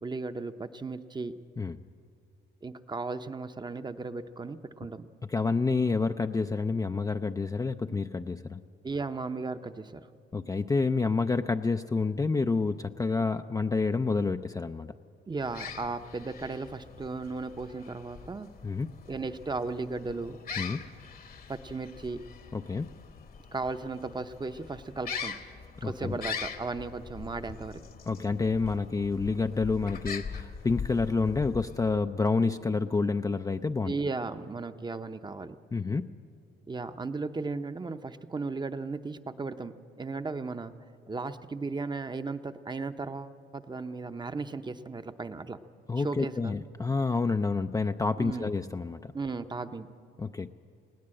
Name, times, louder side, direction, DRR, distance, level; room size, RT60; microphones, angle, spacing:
voice 1, 0.0-1.4 2.6-5.0 7.9-8.0 8.8-10.1 15.3-18.5 19.1-20.4 21.5-22.2 23.5-25.4 25.8-27.8 33.8-35.6 36.7-40.7 41.1-45.6 46.0-46.5 48.2-48.5 49.1-49.9, right 3 dB, 20° right, 10 dB, 0.8 m, -36 dB
voice 2, 5.3-8.6 10.3-14.9 18.6-18.9 20.6-20.8 22.5-22.9 25.8-26.2 28.1-33.9 35.7-36.1 45.9-49.1 50.2-50.5, left 4 dB, 20° left, 7 dB, 0.4 m, -28 dB
sound 1, 15.3-32.1, left 6 dB, 45° left, 1.1 m, -42 dB
19.5 x 17.0 x 7.7 m, 2.3 s
cardioid pair, 90°, 20 cm